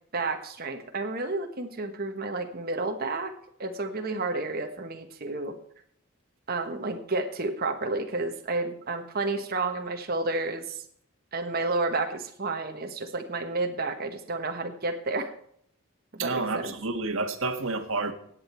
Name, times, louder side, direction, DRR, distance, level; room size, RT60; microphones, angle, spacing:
voice 1, 0.1-3.3 3.6-5.5 6.5-10.8 11.3-15.3 16.1-16.7, right 3 dB, 45° right, 5 dB, 1.3 m, -31 dB
voice 2, 16.2-18.1, right 3 dB, 65° right, 7 dB, 1.6 m, -29 dB
16.5 x 8.8 x 4.4 m, 0.66 s
head